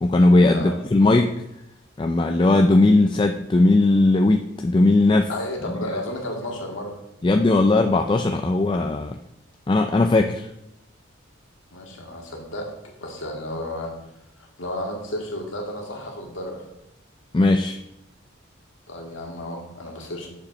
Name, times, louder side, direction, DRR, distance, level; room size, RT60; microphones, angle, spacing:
voice 1, 0.0-1.3 2.0-5.3 7.2-9.2 9.7-10.5 17.3-17.8, left 2 dB, 25° left, 5 dB, 0.3 m, -18 dB
voice 2, 5.3-7.0 11.7-13.9 14.4-16.7 18.9-20.3, left 1 dB, 75° left, 0 dB, 2.0 m, -32 dB
7.1 x 5.0 x 6.3 m, 0.85 s
head